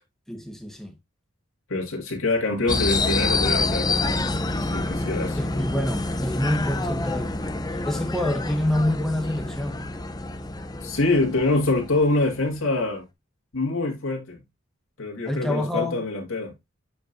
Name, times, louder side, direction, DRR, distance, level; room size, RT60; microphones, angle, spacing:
voice 1, 0.3-0.9 5.4-7.3 7.8-9.8 15.2-16.0, left 1 dB, ahead, 1.2 m, -27 dB
voice 2, 1.7-4.2 4.5-5.4 10.8-13.0 13.5-14.4 15.0-16.5, left 2 dB, 80° left, 1.9 m, -25 dB
sound 1, 2.7-12.6, left 2 dB, 20° left, 0.6 m, -27 dB
7.4 x 5.2 x 2.6 m
head